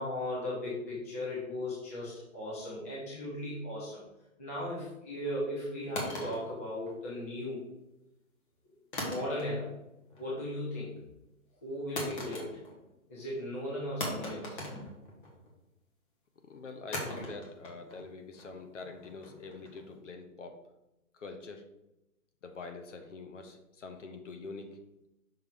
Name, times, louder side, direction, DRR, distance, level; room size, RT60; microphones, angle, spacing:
voice 1, 0.0-4.0 4.4-7.6 9.0-9.7 10.2-10.9 11.6-12.6 13.1-14.8, left 1 dB, 10° left, -7 dB, 0.6 m, -37 dB
sound 1, 6.0-7.4 8.9-9.8 10.1-10.5 12.0-12.9 13.2-13.3 14.0-15.5 16.9-19.9, left 1 dB, 35° left, 1.6 m, -40 dB
voice 2, 16.4-20.6 21.1-21.6 22.4-24.8, left 4 dB, 55° left, 6 dB, 1.1 m, -45 dB
5.8 x 3.5 x 5.1 m, 0.91 s
hypercardioid pair, 160°, 43 cm